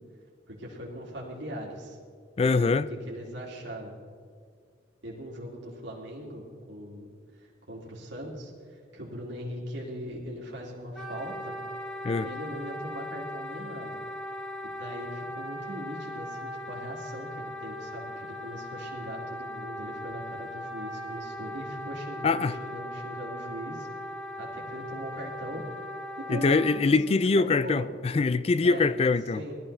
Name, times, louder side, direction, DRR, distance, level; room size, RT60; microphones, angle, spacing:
voice 1, 0.5-2.0 2.4-3.9 5.0-7.1 7.3-11.6 12.2-14.0 14.8-23.9 24.4-25.6 26.2-27.9 28.6-28.9 29.3-29.6, equal, 85° right, 2.5 m, -40 dB
voice 2, 2.4-2.9 12.0-12.3 22.2-22.5 26.3-29.4, left 4 dB, 35° left, 0.3 m, -23 dB
Wind instrument woodwind instrument, 10.9-26.8, equal, 5° left, 1.4 m, -39 dB
19.5 x 13.5 x 3.3 m
head